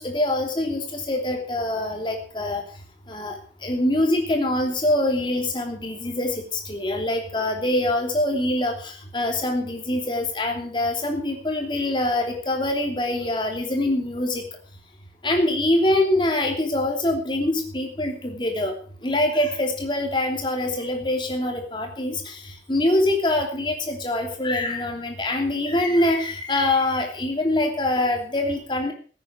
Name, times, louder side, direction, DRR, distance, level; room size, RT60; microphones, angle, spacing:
voice 1, 0.0-2.7 3.1-14.5 15.2-18.8 19.0-28.9, left 1 dB, 25° left, 3 dB, 3.0 m, -24 dB
16.0 x 9.0 x 6.1 m, 0.41 s
head